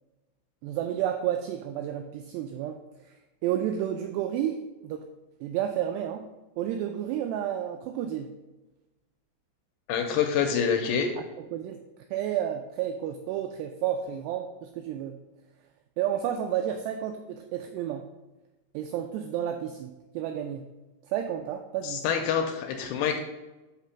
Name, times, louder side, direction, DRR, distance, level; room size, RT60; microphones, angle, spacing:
voice 1, 0.6-2.8 3.1-3.2 3.4-5.0 5.4-6.3 6.6-8.3 11.2-11.8 12.1-15.2 16.0-18.1 18.7-20.6 21.1-22.1, right 10 dB, 85° right, 5 dB, 2.4 m, -31 dB
voice 2, 9.9-11.1 21.8-23.2, left 7 dB, 80° left, 5 dB, 2.7 m, -26 dB
6.0 x 6.0 x 5.7 m, 1.1 s
omnidirectional pair, 5.4 m